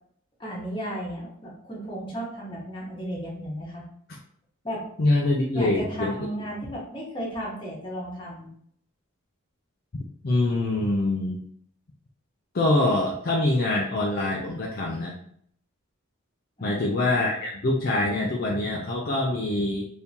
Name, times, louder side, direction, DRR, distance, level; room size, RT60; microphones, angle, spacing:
voice 1, 0.4-3.8 4.6-4.8 5.5-8.5 16.6-17.2, equal, 25° left, -4 dB, 1.0 m, -34 dB
voice 2, 5.0-6.2 10.2-11.4 12.5-15.1 16.6-19.9, left 2 dB, 45° left, -2 dB, 0.4 m, -24 dB
3.6 x 2.7 x 2.8 m, 0.64 s
head